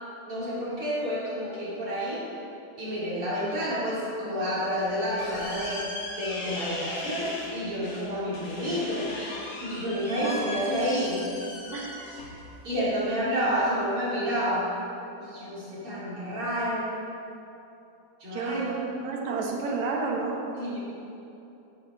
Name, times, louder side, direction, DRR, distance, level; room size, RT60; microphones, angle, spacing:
voice 1, 0.3-2.3 2.8-11.3 12.6-14.7 15.2-16.9 18.2-18.7 20.6-20.8, equal, 45° right, -9 dB, 4.2 m, -29 dB
sound 1, 4.6-13.6, left 2 dB, 50° left, 2.5 m, -39 dB
voice 2, 10.2-10.6 11.7-12.0 18.3-20.4, right 4 dB, 75° right, 0 dB, 2.5 m, -31 dB
14.5 x 11.0 x 4.0 m, 2.8 s
omnidirectional pair, 3.4 m